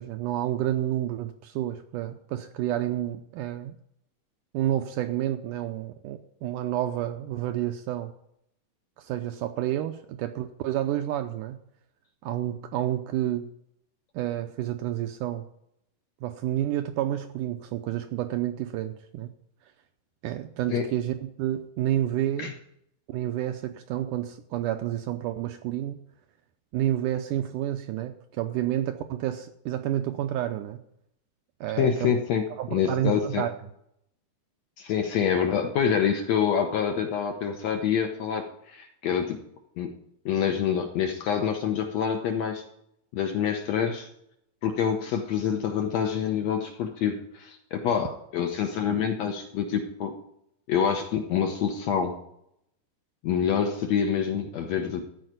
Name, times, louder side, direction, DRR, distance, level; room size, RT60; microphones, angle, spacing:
voice 1, 0.0-3.8 4.5-8.1 9.0-11.6 12.2-13.5 14.1-15.5 16.2-19.3 20.2-22.5 23.1-26.0 26.7-30.8 31.6-32.1 32.6-33.5, right 12 dB, 80° right, 7 dB, 1.9 m, -29 dB
voice 2, 31.8-32.4 32.7-33.4 34.8-39.4 39.8-39.9 40.2-42.6 43.1-44.1 44.6-50.1 50.7-52.2 53.2-55.0, left 7 dB, 70° left, 4 dB, 1.6 m, -26 dB
14.5 x 4.9 x 9.3 m, 0.75 s
omnidirectional pair, 4.2 m